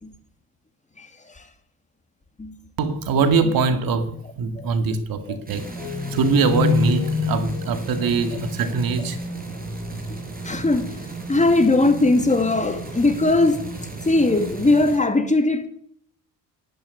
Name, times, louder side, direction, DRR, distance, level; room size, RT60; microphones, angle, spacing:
voice 1, 2.8-5.6 6.1-9.2, right 4 dB, 70° right, 2.1 m, -22 dB
sound 1, 5.5-15.0, right 3 dB, 25° right, 5.3 m, -34 dB
sound 2, 5.8-9.2, left 6 dB, 90° left, 1.9 m, -26 dB
voice 2, 10.4-10.9 11.3-13.6 14.1-15.7, left 2 dB, 20° left, 2.4 m, -19 dB
11.0 x 10.5 x 9.6 m
cardioid pair, 80°, 36 cm